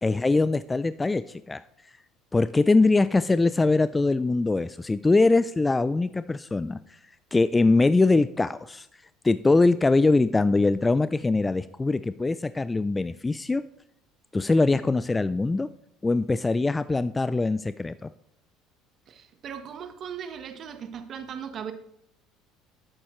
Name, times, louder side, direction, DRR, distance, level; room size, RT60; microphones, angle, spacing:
voice 1, 0.0-1.6 2.3-7.0 7.3-8.9 9.2-13.6 14.3-15.7 16.0-18.1, left 3 dB, 20° left, 14 dB, 0.3 m, -22 dB
voice 2, 19.1-21.7, right 8 dB, 50° right, 9 dB, 1.2 m, -38 dB
11.0 x 8.6 x 3.2 m, 0.78 s
hypercardioid pair, 80°, 0 cm